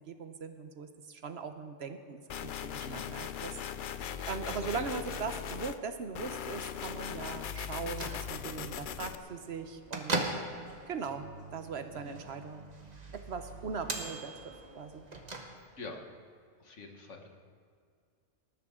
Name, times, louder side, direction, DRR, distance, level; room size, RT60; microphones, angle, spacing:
voice 1, 0.0-3.6 4.0-10.4 10.9-12.7 13.1-15.0, right 5 dB, 65° right, 8 dB, 1.2 m, -40 dB
sound 1, 2.3-5.8 6.1-9.1, left 8 dB, 55° left, 0.6 m, -39 dB
voice 2, 2.8-3.2 4.5-5.2 11.9-12.2 15.8-16.0 16.6-17.3, left 2 dB, 90° left, 3 dB, 1.8 m, -45 dB
Bell / Microwave oven, 7.8-16.0, right 2 dB, 35° right, 1.4 m, -41 dB
19.5 x 14.0 x 3.8 m, 2.2 s
omnidirectional pair, 1.2 m